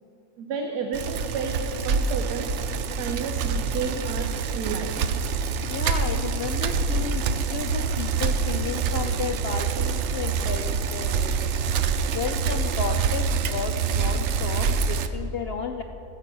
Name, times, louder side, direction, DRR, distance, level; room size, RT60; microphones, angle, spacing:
voice 1, 0.4-2.6 2.9-5.1, right 5 dB, 85° right, 4 dB, 1.3 m, -32 dB
Bicycle, 0.9-15.1, right 5 dB, 65° right, 0.7 m, -26 dB
voice 2, 5.6-11.5 12.1-15.8, left 6 dB, 80° left, 5 dB, 0.5 m, -33 dB
14.0 x 7.7 x 6.1 m, 3.0 s
omnidirectional pair, 1.6 m